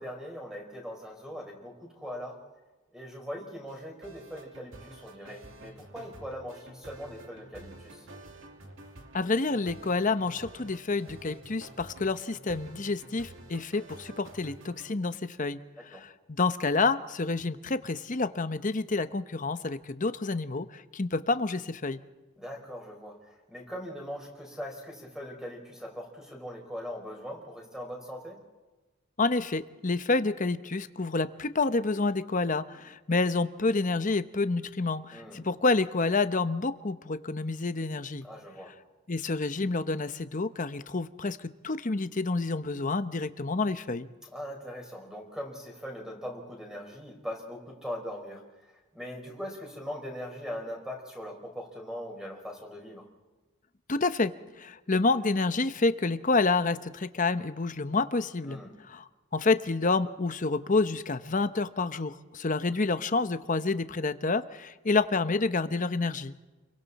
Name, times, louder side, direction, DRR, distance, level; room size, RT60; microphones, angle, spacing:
voice 1, 0.0-2.4 2.9-8.1 15.9-16.1 22.4-28.4 35.1-35.4 38.2-38.7 44.3-53.1 58.4-58.7, equal, 5° right, 1 dB, 4.9 m, -41 dB
sound 1, 3.7-14.9, right 1 dB, 70° right, 2.6 m, -49 dB
voice 2, 9.1-15.6 15.9-22.0 29.2-38.3 39.1-44.1 53.9-54.3 54.6-58.6 58.9-59.0 59.3-66.3, left 3 dB, 40° left, 11 dB, 0.9 m, -28 dB
30.0 x 23.5 x 4.2 m, 1.2 s
head